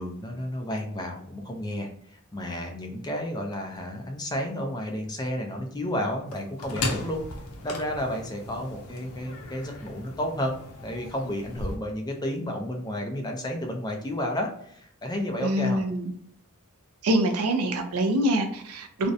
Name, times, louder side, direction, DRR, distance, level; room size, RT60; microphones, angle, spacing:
voice 1, 0.0-1.9 2.3-7.2 7.6-15.8, equal, 20° left, 2 dB, 0.4 m, -31 dB
sound 1, 6.3-11.8, left 2 dB, 85° left, 0.5 m, -36 dB
voice 2, 15.4-16.1 17.0-19.1, right 1 dB, 80° right, 5 dB, 0.5 m, -25 dB
2.5 x 2.1 x 2.6 m, 0.66 s
head